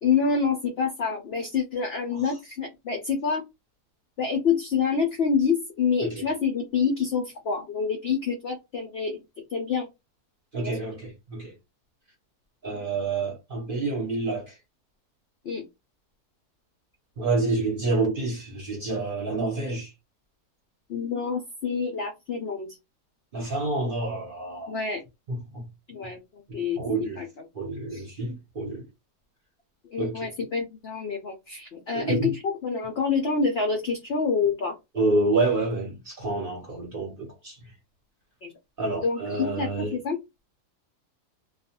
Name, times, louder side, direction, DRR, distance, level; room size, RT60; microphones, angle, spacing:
voice 1, 0.0-3.4 4.2-9.2 9.5-9.9 10.6-11.0 15.4-15.6 20.9-22.8 24.7-25.0 25.9-26.8 27.2-27.3 27.9-28.1 29.8-34.8 38.4-38.5 39.0-40.2, left 5 dB, 70° left, 0.6 m, -27 dB
voice 2, 10.5-11.5 12.6-14.5 17.2-19.9 23.3-24.8 25.3-25.6 26.5-27.2 27.5-28.8 30.0-30.3 31.9-32.3 34.9-37.6 38.8-40.0, right 2 dB, 45° right, 0.8 m, -28 dB
2.4 x 2.3 x 2.7 m
omnidirectional pair, 1.7 m